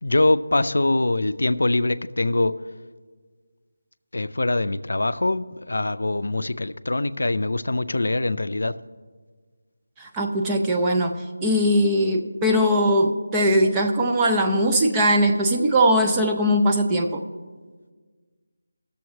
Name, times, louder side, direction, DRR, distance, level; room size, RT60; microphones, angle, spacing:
voice 1, 0.0-2.5 4.1-8.7, left 2 dB, 75° left, 13 dB, 0.4 m, -23 dB
voice 2, 10.0-17.2, equal, 5° right, 1 dB, 0.3 m, -20 dB
19.5 x 6.9 x 3.1 m, 1.5 s
figure-of-eight pair, 180°, 0 cm